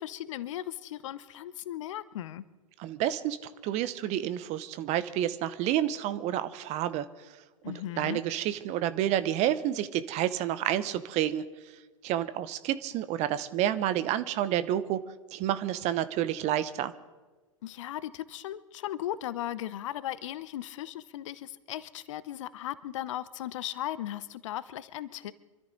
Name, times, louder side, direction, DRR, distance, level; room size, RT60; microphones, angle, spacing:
voice 1, 0.0-2.4 7.6-8.2 17.6-25.3, left 12 dB, 65° left, 17 dB, 0.8 m, -37 dB
voice 2, 2.8-7.1 7.7-11.5 12.0-15.0 15.3-16.9, right 12 dB, 40° right, 14 dB, 1.0 m, -29 dB
26.0 x 13.5 x 3.9 m, 1.3 s
hypercardioid pair, 95°, 17 cm